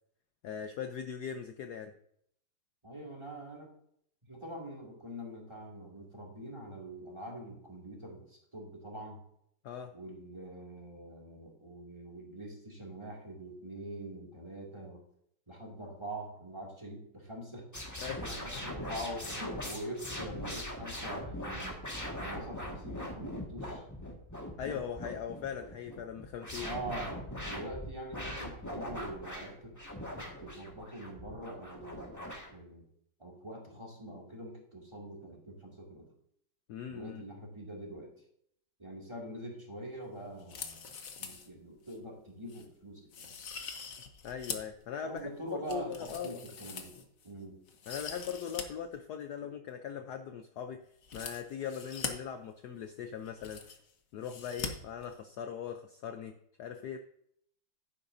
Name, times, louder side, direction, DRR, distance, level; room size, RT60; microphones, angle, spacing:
voice 1, 0.4-1.9 9.6-9.9 18.0-18.2 18.5-19.0 24.6-26.7 36.7-37.2 44.2-46.4 47.9-50.8 51.1-53.6 54.1-57.0, left 8 dB, 65° left, 7 dB, 1.0 m, -40 dB
voice 2, 2.8-3.7 4.2-9.2 9.9-15.0 15.5-17.7 18.2-21.8 22.2-23.8 26.6-29.7 30.2-32.8 33.2-36.1 36.9-38.1 38.8-40.9 41.2-43.3 45.0-47.0 47.2-47.6, right 1 dB, 15° right, -1 dB, 2.4 m, -44 dB
sound 1, 17.7-32.5, left 1 dB, 10° left, 1.6 m, -41 dB
sound 2, 40.4-41.5 41.9-42.0 42.5-42.7 43.1-44.8 45.2-47.3 47.7-48.6 48.9-49.0 51.0-52.1 52.9-53.0 53.2-53.9 54.2-54.7 55.0-55.1, left 6 dB, 50° left, 1.3 m, -42 dB
11.0 x 9.8 x 2.7 m, 0.70 s
omnidirectional pair, 2.2 m